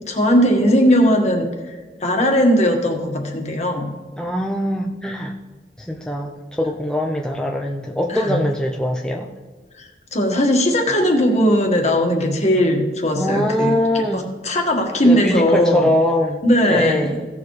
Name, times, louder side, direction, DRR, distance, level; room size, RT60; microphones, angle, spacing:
voice 1, 0.1-1.4 2.0-3.9 8.1-8.4 9.8-15.9 16.4-17.1, equal, 40° left, 2 dB, 1.6 m, -18 dB
voice 2, 4.2-5.3 5.8-9.3 13.2-14.2 15.0-17.3, left 1 dB, 5° left, 0 dB, 0.5 m, -22 dB
16.5 x 7.0 x 3.2 m, 1.4 s
head